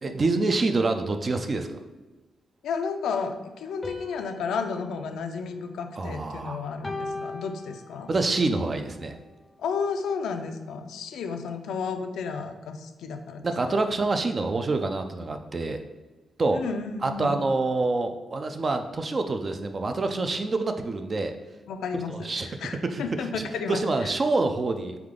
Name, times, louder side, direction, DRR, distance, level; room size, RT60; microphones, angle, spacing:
voice 1, 0.0-1.7 6.0-6.6 8.1-9.2 13.4-15.8 16.4-16.6 17.0-21.4 22.1-22.5 22.9-23.0 23.3-25.0, right 3 dB, 35° right, 6 dB, 0.4 m, -26 dB
voice 2, 2.6-8.1 9.6-13.8 16.5-17.4 21.7-24.1, left 5 dB, 90° left, 6 dB, 0.4 m, -32 dB
sound 1, 3.8-6.3 6.8-8.4, left 2 dB, 20° left, 0.5 m, -40 dB
3.5 x 3.3 x 3.6 m, 1.2 s
cardioid pair, 90°, 0 cm